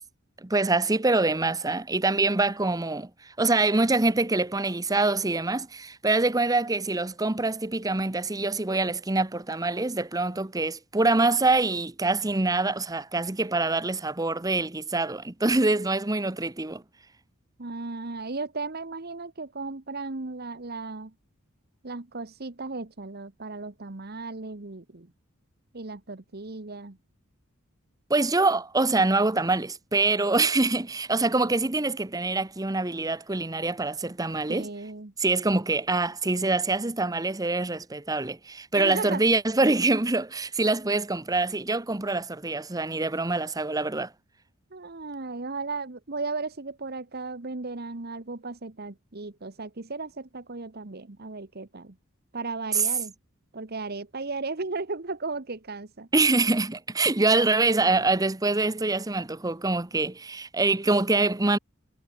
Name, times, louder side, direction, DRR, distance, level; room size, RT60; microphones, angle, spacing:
voice 1, 0.4-16.8 28.1-34.7 35.2-44.1 52.7-52.8 56.1-61.6, right 3 dB, 15° right, 0.9 m, -25 dB
voice 2, 17.6-21.1 21.8-25.1 25.7-27.0 34.5-35.1 38.7-39.2 44.7-51.9 52.3-53.1 53.5-56.1, right 3 dB, 50° right, 1.3 m, -35 dB
head